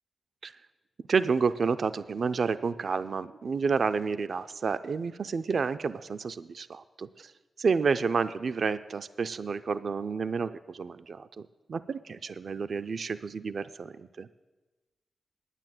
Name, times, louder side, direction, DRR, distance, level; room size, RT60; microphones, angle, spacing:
voice 1, 1.1-7.3 7.6-14.3, right 5 dB, 65° right, 12 dB, 0.4 m, -30 dB
9.9 x 9.2 x 7.6 m, 1.2 s
cardioid pair, 65°, 0 cm